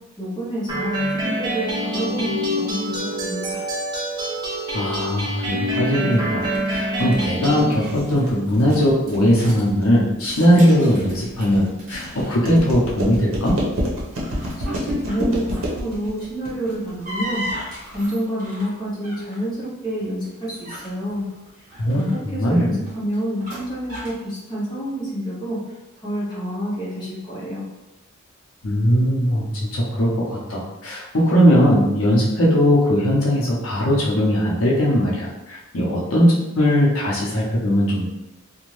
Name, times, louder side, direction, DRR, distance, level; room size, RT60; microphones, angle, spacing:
voice 1, 0.2-3.6 14.7-17.5 17.9-21.3 21.9-25.6 26.0-27.7, equal, 20° left, -9 dB, 0.8 m, -28 dB
sound 1, 0.7-7.7, equal, 20° right, 0.5 m, -26 dB
voice 2, 4.7-13.6 21.8-22.7 28.6-38.1, equal, 75° left, -4 dB, 0.7 m, -19 dB
sound 2, 6.1-18.1, equal, 70° right, 0.7 m, -29 dB
sound 3, 7.8-9.6 10.1-12.8 13.1-13.5 14.0-15.8 16.5-19.4 20.0-24.2, equal, 35° right, 0.8 m, -37 dB
2.5 x 2.2 x 3.1 m, 0.97 s
head